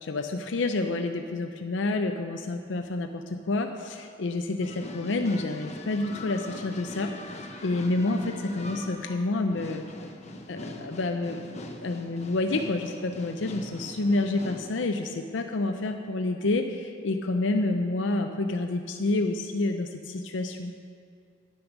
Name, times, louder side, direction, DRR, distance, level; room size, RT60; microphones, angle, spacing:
voice 1, 0.0-7.1 7.6-9.9 10.5-20.7, left 2 dB, 75° left, 5 dB, 0.6 m, -29 dB
sound 1, 4.6-14.6, left 1 dB, 35° left, 0.9 m, -41 dB
10.0 x 8.7 x 6.0 m, 2.3 s
head